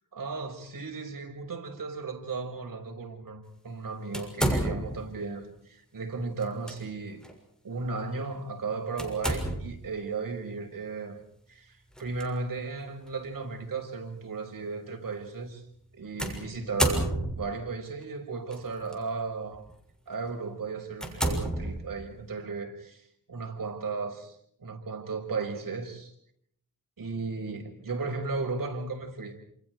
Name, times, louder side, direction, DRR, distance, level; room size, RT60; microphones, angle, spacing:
voice 1, 0.1-7.2 7.6-11.2 11.5-15.6 15.9-19.6 20.1-24.4 24.6-26.1 27.0-29.4, right 4 dB, 60° right, 6.2 m, -35 dB
sound 1, 4.1-5.1 6.4-6.8 7.2-7.3 9.0-9.9 11.9-12.2 13.1-13.2 16.2-17.6 18.5-18.9 19.5-19.7 20.3-20.4 21.0-22.2, right 1 dB, ahead, 6.6 m, -30 dB
29.0 x 28.5 x 4.8 m
wide cardioid pair, 90°, 36 cm